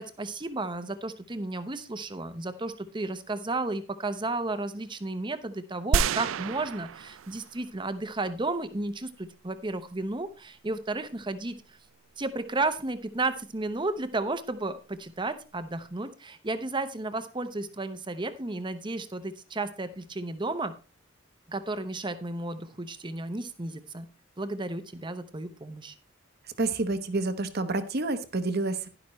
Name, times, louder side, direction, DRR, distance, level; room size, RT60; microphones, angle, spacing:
voice 1, 0.0-11.6 12.2-20.7 21.5-24.1 24.4-25.9, right 2 dB, 25° right, 10 dB, 0.8 m, -33 dB
sound 1, 5.9-7.7 8.2-8.3, right 6 dB, 80° right, 0.4 m, -29 dB
voice 2, 26.6-28.9, right 2 dB, 50° right, 10 dB, 1.0 m, -28 dB
11.0 x 11.0 x 3.1 m, 0.33 s
head